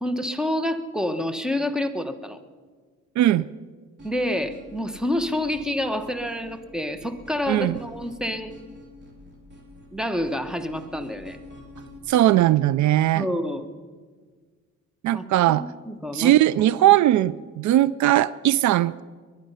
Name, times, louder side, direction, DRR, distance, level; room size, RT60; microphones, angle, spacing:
voice 1, 0.0-2.4 4.0-8.5 9.9-11.4 13.1-13.6 15.1-15.3 15.6-16.3, left 1 dB, ahead, 9 dB, 1.2 m, -28 dB
voice 2, 3.2-3.5 7.5-7.8 12.1-13.3 15.0-15.6 16.1-19.0, right 14 dB, 70° right, 19 dB, 0.4 m, -19 dB
sound 1, 4.0-12.0, left 1 dB, 35° right, 4.0 m, -46 dB
21.0 x 11.5 x 5.6 m, 1.5 s
cardioid pair, 90°, 30 cm